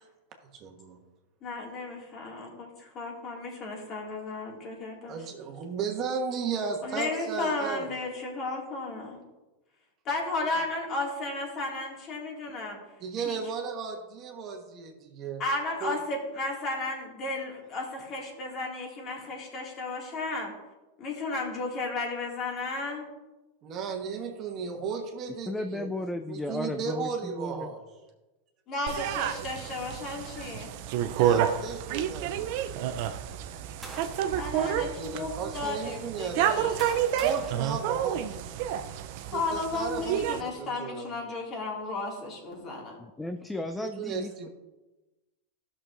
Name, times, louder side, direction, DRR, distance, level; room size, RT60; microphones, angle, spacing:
voice 1, 0.5-1.0 5.1-7.9 13.0-14.9 15.2-15.4 15.8-16.0 23.6-25.9 26.3-27.8 31.1-32.5 34.5-36.8 37.2-38.2 39.3-41.1 43.8-44.5, right 5 dB, 40° right, 2 dB, 1.2 m, -35 dB
voice 2, 1.4-5.2 6.8-9.2 10.0-12.8 13.2-13.4 15.4-20.5 21.0-23.0 28.7-30.7 34.3-36.8 39.3-43.0, left 2 dB, 40° left, -1 dB, 2.1 m, -34 dB
voice 3, 25.5-27.7 43.0-44.5, left 2 dB, 5° left, 6 dB, 0.4 m, -34 dB
sound 1, 28.9-40.4, right 10 dB, 60° right, 0.5 m, -30 dB
sound 2, 33.3-34.5 35.2-35.4 36.3-38.6, right 2 dB, 10° right, 1.6 m, -45 dB
13.5 x 6.3 x 2.6 m, 1.1 s
hypercardioid pair, 115°, 0 cm